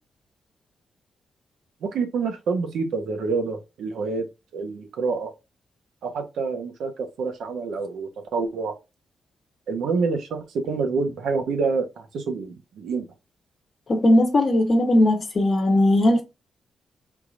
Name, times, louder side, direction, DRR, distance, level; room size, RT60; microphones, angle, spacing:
voice 1, 1.8-4.2 4.5-5.3 6.0-8.7 9.7-13.0, right 4 dB, 80° right, 1.0 m, -27 dB
voice 2, 13.9-16.2, left 1 dB, 30° left, 1.0 m, -18 dB
4.6 x 3.6 x 2.4 m
wide cardioid pair, 165°, 0 cm